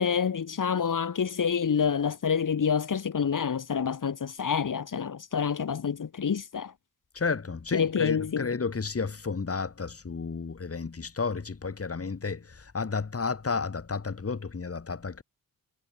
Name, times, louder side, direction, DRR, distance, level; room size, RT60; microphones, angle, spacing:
voice 1, 0.0-6.7 7.7-8.5, left 7 dB, 60° left, 3.5 m, -27 dB
voice 2, 7.1-15.2, left 4 dB, 40° left, 3.8 m, -32 dB
cardioid pair, 60°, 35 cm